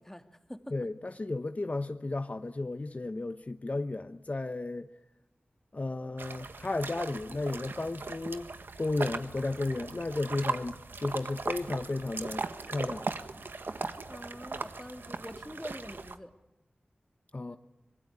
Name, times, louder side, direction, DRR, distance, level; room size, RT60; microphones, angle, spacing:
voice 1, 0.0-0.8 14.1-16.3 17.5-17.6, left 1 dB, 10° left, 2.0 m, -45 dB
voice 2, 0.7-4.9 5.7-8.5 8.8-13.1 17.3-17.6, left 2 dB, 45° left, 1.1 m, -33 dB
sound 1, 6.2-16.2, right 3 dB, 85° right, 1.6 m, -39 dB
25.5 x 22.0 x 9.7 m
wide cardioid pair, 55°, 4 cm